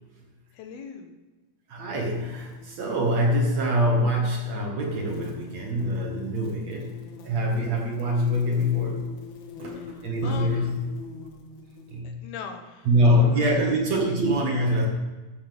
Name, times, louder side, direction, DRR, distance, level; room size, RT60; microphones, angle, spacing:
voice 1, 0.5-1.1 9.7-10.7 12.0-14.1, left 6 dB, 80° left, 4 dB, 3.2 m, -41 dB
voice 2, 1.7-7.0 7.2-9.0 9.6-10.8 11.9-12.2 12.9-14.9, equal, 50° right, 0 dB, 2.7 m, -24 dB
sound 1, 2.0-3.5 3.9-4.1 4.8-12.0 12.8-13.4, left 5 dB, 60° left, 2.5 m, -43 dB
14.5 x 12.0 x 3.6 m, 1.2 s
omnidirectional pair, 4.3 m